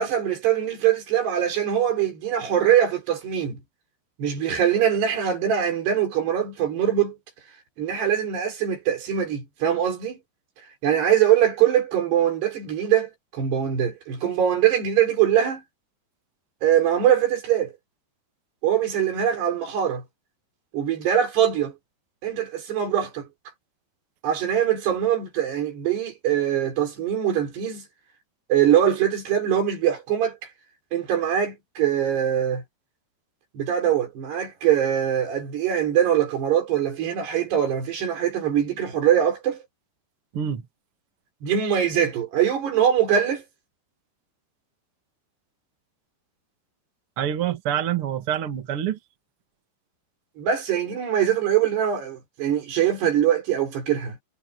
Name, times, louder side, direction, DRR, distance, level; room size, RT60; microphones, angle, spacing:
voice 1, 0.0-3.6 4.2-7.2 7.8-10.2 10.8-15.6 16.6-17.7 18.6-20.0 20.7-21.7 22.2-23.3 24.2-27.8 28.5-30.4 30.9-32.6 33.5-39.6 41.4-43.4 50.4-54.2, right 9 dB, 75° right, 6.4 m, -22 dB
voice 2, 47.2-49.0, right 10 dB, 45° right, 2.1 m, -26 dB
omnidirectional pair, 4.8 m